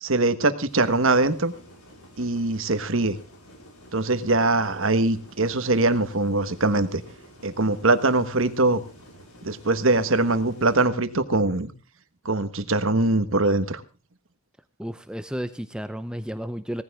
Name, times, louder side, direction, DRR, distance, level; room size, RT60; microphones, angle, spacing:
voice 1, 0.0-1.5 2.2-3.2 3.9-7.0 7.4-8.8 9.4-11.7 12.2-13.8, right 2 dB, 65° right, 11 dB, 1.4 m, -22 dB
sound 1, 0.7-10.9, equal, 80° left, 5.0 m, -49 dB
voice 2, 14.8-16.8, equal, 5° right, 11 dB, 0.6 m, -32 dB
18.0 x 14.5 x 3.6 m, 0.33 s
head